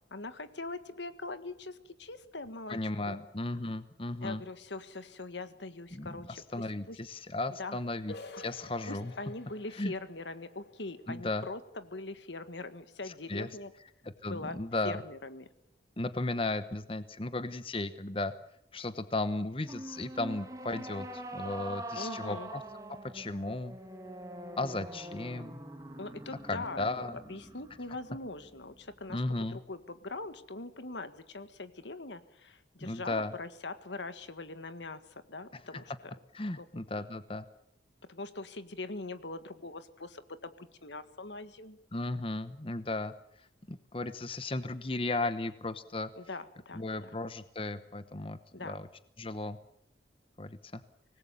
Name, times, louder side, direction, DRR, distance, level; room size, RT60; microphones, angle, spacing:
voice 1, 0.1-2.8 3.1-3.2 4.2-7.0 7.6-7.8 8.3-8.4 8.9-13.7 14.2-14.6 14.8-15.5 21.9-22.5 26.0-26.9 27.3-29.2 29.5-36.1 36.6-36.7 38.1-41.8 46.2-47.1 48.5-48.8, left 2 dB, 80° left, 11 dB, 1.8 m, -42 dB
voice 2, 2.7-4.4 5.9-6.2 6.5-9.1 9.8-9.9 11.1-11.4 13.1-13.5 14.0-15.0 16.0-18.3 18.7-22.6 23.1-23.8 24.6-25.6 26.5-27.2 29.1-29.6 32.8-33.3 35.5-35.6 36.3-37.4 41.9-46.1 46.7-48.9 49.2-49.6 50.4-50.8, left 2 dB, 30° left, 12 dB, 1.0 m, -35 dB
sound 1, 8.1-13.6, left 2 dB, 65° left, 2.5 m, -52 dB
sound 2, 19.6-29.0, right 1 dB, 20° right, 1.9 m, -44 dB
25.5 x 19.5 x 7.0 m, 0.74 s
head